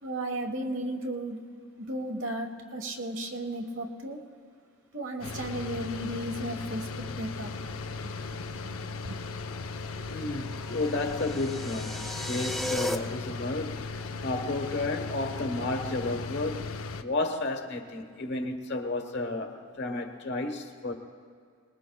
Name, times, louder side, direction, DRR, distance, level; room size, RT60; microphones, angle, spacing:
voice 1, 0.0-1.4 1.8-4.2 4.9-7.5 8.0-8.1 8.6-8.8 9.0-9.2, right 1 dB, 60° right, 1.3 m, -34 dB
sound 1, 5.2-17.0, left 4 dB, 75° left, 0.6 m, -37 dB
voice 2, 10.1-12.0 12.2-16.7 17.0-20.9, left 2 dB, 50° left, 1.2 m, -32 dB
sound 2, 10.4-12.9, equal, ahead, 0.5 m, -35 dB
25.5 x 20.0 x 2.3 m
head